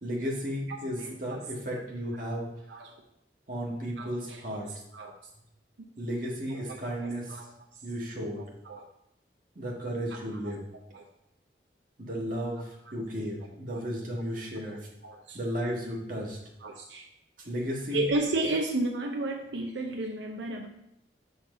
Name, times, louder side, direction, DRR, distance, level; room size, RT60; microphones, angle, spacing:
voice 1, 0.0-2.5 3.5-4.7 6.0-7.4 7.8-8.4 9.5-10.6 12.0-14.9 15.3-16.4 17.4-18.1, equal, 45° right, -3 dB, 1.5 m, -34 dB
voice 2, 1.0-1.4 2.7-2.9 4.0-4.6 4.9-5.1 6.5-6.8 7.0-7.5 8.4-8.9 10.5-10.6 10.9-11.1 13.7-13.8 14.6-14.7 15.0-15.4 16.6-17.1 17.9-20.7, right 2 dB, 90° right, 3 dB, 0.6 m, -33 dB
5.8 x 3.9 x 5.5 m, 0.79 s
head